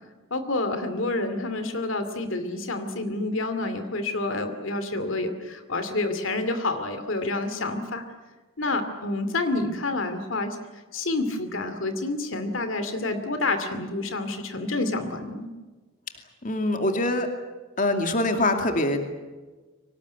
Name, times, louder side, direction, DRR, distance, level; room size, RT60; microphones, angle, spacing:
voice 1, 0.3-8.0 8.6-10.6 10.9-15.5, left 2 dB, 70° left, 9 dB, 2.5 m, -28 dB
voice 2, 16.4-17.3 17.8-19.1, left 1 dB, 40° left, 5 dB, 2.5 m, -24 dB
24.5 x 19.5 x 9.6 m, 1.3 s
head